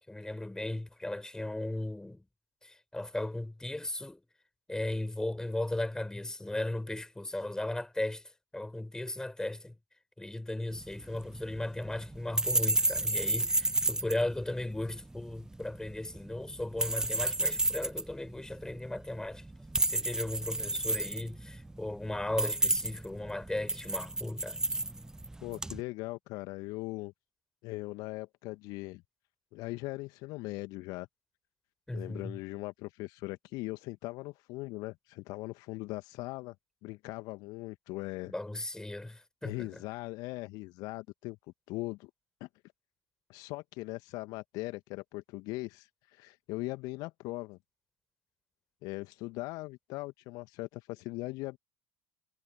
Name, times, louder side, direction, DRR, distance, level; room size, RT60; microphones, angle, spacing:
voice 1, 0.1-2.2 2.6-4.2 4.7-9.8 10.2-19.5 19.9-24.6 31.9-32.4 38.2-39.8, left 1 dB, 10° left, 5.5 m, -36 dB
sound 1, 10.7-25.8, right 2 dB, 10° right, 0.6 m, -32 dB
voice 2, 25.4-27.1 27.6-29.0 29.5-31.1 31.9-36.5 36.8-38.3 39.4-41.4 41.7-42.1 42.4-42.5 43.3-47.6 48.8-51.6, left 22 dB, 60° left, 1.8 m, -40 dB
figure-of-eight pair, 60°, 7 cm